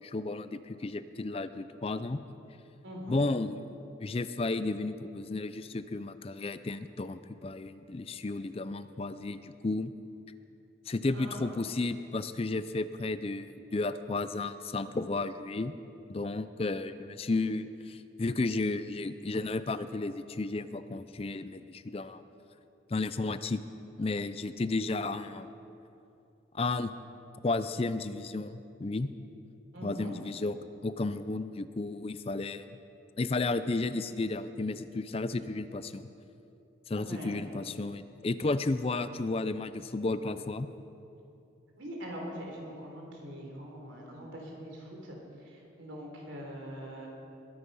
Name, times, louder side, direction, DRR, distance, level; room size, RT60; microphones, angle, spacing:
voice 1, 0.0-2.2 3.1-9.9 10.9-15.7 16.1-22.2 22.9-23.6 24.0-25.5 26.5-26.9 27.4-29.1 29.8-30.6 30.8-32.7 33.2-36.1 36.9-40.7, left 3 dB, 30° left, 12 dB, 0.4 m, -33 dB
voice 2, 2.8-3.2 11.1-11.6 29.7-30.1 37.0-37.4 41.8-45.2 45.4-47.1, equal, 85° right, 0 dB, 3.6 m, -42 dB
21.5 x 9.7 x 5.5 m, 2.7 s
head